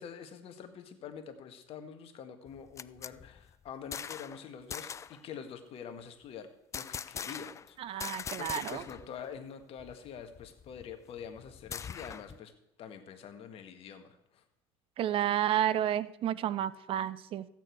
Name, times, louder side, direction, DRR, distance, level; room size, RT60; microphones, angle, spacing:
voice 1, 0.0-12.5 12.8-14.4, left 7 dB, 50° left, 8 dB, 1.7 m, -46 dB
sound 1, 2.5-4.4 4.7-5.2 6.7-7.7 8.0-9.1 9.3-9.4 9.8-12.4, left 7 dB, 25° left, 0.3 m, -42 dB
voice 2, 7.8-8.8 15.0-17.5, right 11 dB, 45° right, 18 dB, 0.6 m, -31 dB
15.0 x 9.1 x 4.7 m, 0.83 s
supercardioid pair, 90°, 12 cm